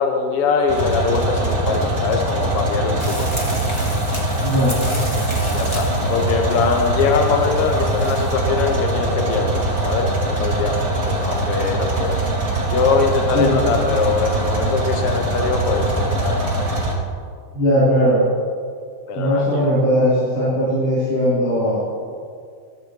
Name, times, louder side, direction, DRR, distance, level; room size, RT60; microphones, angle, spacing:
voice 1, 0.0-3.3 5.5-12.2 12.7-16.4 19.1-19.7, left 5 dB, 70° left, 4 dB, 1.3 m, -22 dB
sound 1, 0.7-16.9, right 2 dB, 30° right, 2.3 m, -22 dB
sound 2, 3.0-8.3, left 1 dB, 15° left, 1.2 m, -33 dB
voice 2, 4.4-4.8 13.3-13.5 17.5-18.2 19.1-22.0, equal, 45° left, -11 dB, 5.1 m, -18 dB
19.5 x 13.5 x 3.3 m, 2.2 s
omnidirectional pair, 3.9 m